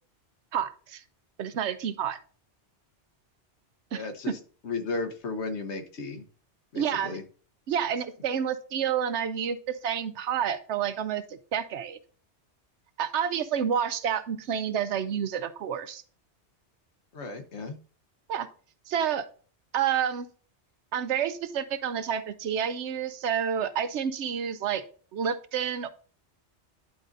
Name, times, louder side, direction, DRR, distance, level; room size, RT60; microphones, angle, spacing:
voice 1, 0.5-1.0 1.4-2.2 3.9-4.3 6.7-7.2 7.7-12.0 13.0-16.0 18.3-18.5 18.9-19.2 19.7-20.3 20.9-24.8 25.1-25.9, right 8 dB, 80° right, 12 dB, 1.0 m, -29 dB
voice 2, 3.9-4.4 4.6-6.2 6.7-7.2 17.1-17.8, left 3 dB, 75° left, 7 dB, 1.3 m, -34 dB
10.5 x 3.9 x 3.8 m, 0.41 s
omnidirectional pair, 1.2 m